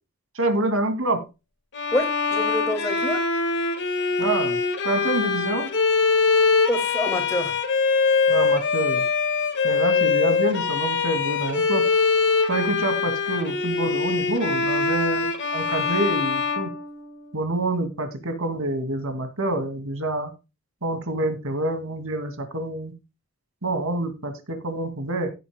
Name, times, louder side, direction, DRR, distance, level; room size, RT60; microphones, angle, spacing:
voice 1, 0.3-1.2 4.2-5.7 8.3-9.0 9.6-11.9 12.5-16.7 17.3-20.3 20.8-22.9 23.6-25.3, right 2 dB, 65° right, 7 dB, 2.4 m, -27 dB
Bowed string instrument, 1.7-17.5, left 4 dB, 55° left, 1.8 m, -23 dB
voice 2, 1.9-3.2 6.7-7.6, left 1 dB, 10° left, 4 dB, 2.5 m, -26 dB
16.5 x 8.5 x 2.3 m, 0.27 s
head